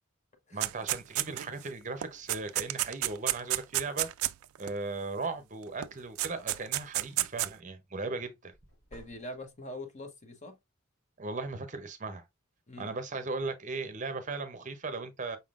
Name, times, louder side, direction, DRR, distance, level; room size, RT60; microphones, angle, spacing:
voice 1, 0.5-4.1 4.6-8.5 11.2-12.2 12.8-15.4, right 3 dB, 35° right, 0.7 m, -37 dB
sound 1, 0.6-1.6 2.0-4.7 5.8-5.9 6.2-7.5, right 16 dB, 90° right, 0.3 m, -31 dB
sound 2, 8.5-9.8, equal, 80° left, 3.6 m, -58 dB
voice 2, 8.9-10.6 12.7-12.9, left 1 dB, 35° left, 1.0 m, -43 dB
5.5 x 3.6 x 2.4 m
head